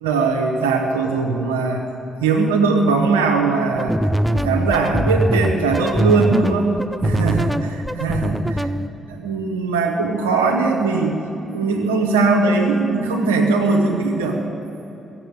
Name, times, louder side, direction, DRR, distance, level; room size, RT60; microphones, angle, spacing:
voice 1, 0.0-1.8 2.2-4.0 4.3-6.7 7.0-8.6 9.1-11.2 11.5-14.4, right 4 dB, 90° right, 2 dB, 1.1 m, -20 dB
sound 1, 3.7-8.9, right 1 dB, 5° right, 0.5 m, -22 dB
15.0 x 7.8 x 8.0 m, 2.9 s
hypercardioid pair, 45°, 0 cm